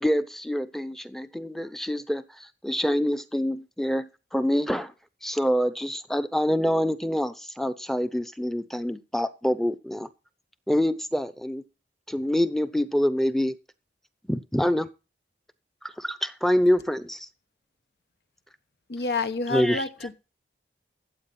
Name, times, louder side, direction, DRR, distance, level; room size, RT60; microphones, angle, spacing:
voice 1, 0.0-4.9 5.2-10.1 10.7-11.6 12.1-13.5 14.3-14.9 15.8-17.3 19.5-20.1, equal, ahead, 0.7 m, -26 dB
voice 2, 18.9-19.9, left 3 dB, 70° left, 1.1 m, -28 dB
14.5 x 8.3 x 4.2 m
head